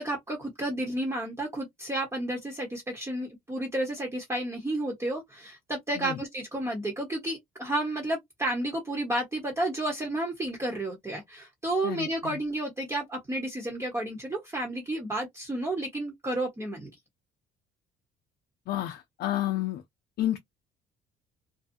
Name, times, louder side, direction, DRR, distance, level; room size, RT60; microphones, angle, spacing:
voice 1, 0.0-16.9, right 1 dB, 15° right, 1.0 m, -31 dB
voice 2, 11.8-12.4 18.7-19.8 20.2-20.4, left 13 dB, 70° left, 0.5 m, -30 dB
2.6 x 2.2 x 2.6 m
cardioid pair, 110°, 17 cm